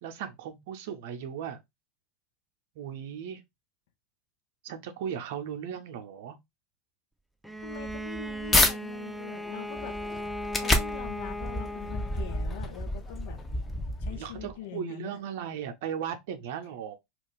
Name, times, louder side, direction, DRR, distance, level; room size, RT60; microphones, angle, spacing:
voice 1, 0.0-1.6 2.8-3.4 4.6-6.4 13.8-17.0, right 8 dB, 70° right, 0.6 m, -37 dB
Bowed string instrument, 7.4-12.6, equal, ahead, 0.4 m, -37 dB
voice 2, 7.6-10.0 10.6-13.4 14.0-15.3, left 10 dB, 70° left, 0.6 m, -43 dB
sound 1, 7.6-8.7 9.3-14.5, left 2 dB, 20° left, 0.7 m, -30 dB
2.4 x 2.3 x 3.7 m
hypercardioid pair, 85°, 0 cm